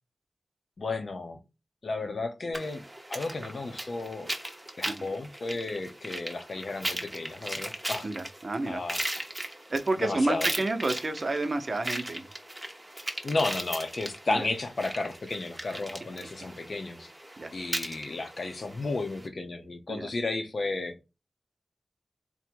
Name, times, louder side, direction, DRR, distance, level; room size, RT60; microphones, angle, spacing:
voice 1, 0.8-1.4 1.8-2.8 3.1-4.3 4.8-8.1 8.7-9.0 10.0-10.5 13.2-17.1 17.5-20.9, left 3 dB, 70° left, 0.7 m, -33 dB
sound 1, 2.5-19.3, right 1 dB, 15° right, 0.8 m, -38 dB
voice 2, 8.0-8.8 9.7-12.3 14.3-14.5 17.4-17.5 19.9-20.1, right 2 dB, 50° right, 0.7 m, -30 dB
3.7 x 2.1 x 4.4 m
wide cardioid pair, 70°, 0 cm